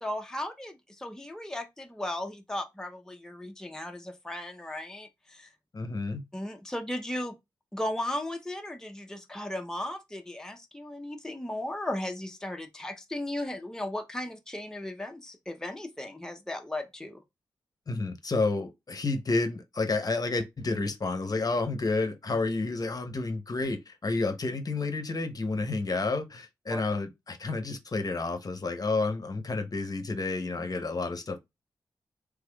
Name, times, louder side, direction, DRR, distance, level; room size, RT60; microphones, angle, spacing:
voice 1, 0.0-5.5 6.3-7.3 7.7-17.2 26.7-26.8, left 1 dB, 5° left, 0.7 m, -36 dB
voice 2, 5.7-6.2 17.9-31.4, left 3 dB, 45° left, 0.8 m, -30 dB
3.4 x 3.3 x 2.2 m
supercardioid pair, 40°, 9 cm